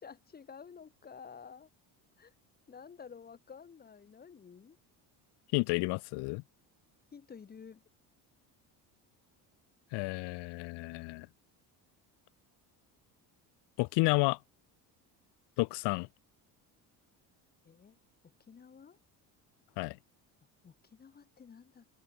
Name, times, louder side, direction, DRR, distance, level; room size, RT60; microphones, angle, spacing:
voice 1, 0.0-1.7 2.2-2.3 2.7-4.8 7.1-7.8 17.6-18.0 18.5-19.0 20.6-21.9, left 6 dB, 25° left, 1.9 m, -51 dB
voice 2, 5.5-6.4 9.9-11.3 13.8-14.4 15.6-16.1 19.8-20.0, left 24 dB, 85° left, 0.8 m, -31 dB
open air
cardioid pair, 150°, 40 cm